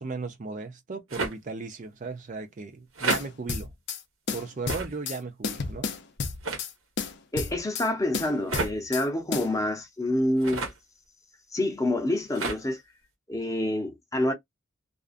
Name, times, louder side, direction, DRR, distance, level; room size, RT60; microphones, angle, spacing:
voice 1, 0.0-3.7 4.3-5.9, right 4 dB, 40° right, 0.5 m, -36 dB
sound 1, 1.1-1.3 2.9-3.2 4.7-4.9 6.4-6.6 8.5-8.7 10.4-10.8 12.3-12.6, right 3 dB, 85° right, 1.1 m, -30 dB
sound 2, 3.1-4.0 4.3-5.2 5.4-6.7 7.0-7.9 8.1-9.0 9.3-9.5, left 5 dB, 60° left, 0.6 m, -32 dB
voice 2, 7.3-10.7 11.5-12.8 13.3-14.3, left 1 dB, 15° left, 0.7 m, -27 dB
2.5 x 2.3 x 2.4 m
head